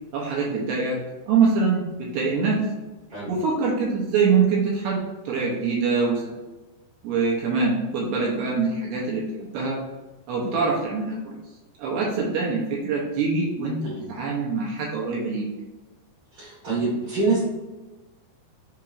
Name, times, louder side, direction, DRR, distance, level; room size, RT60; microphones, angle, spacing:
voice 1, 0.1-1.0 1.3-2.6 3.3-5.0 5.3-6.3 7.0-9.8 10.3-11.3 11.8-13.8 14.1-15.5, right 4 dB, 80° right, -3 dB, 2.3 m, -24 dB
voice 2, 16.3-17.4, right 3 dB, 60° right, -11 dB, 2.6 m, -25 dB
6.8 x 2.9 x 2.5 m, 1.1 s
omnidirectional pair, 5.3 m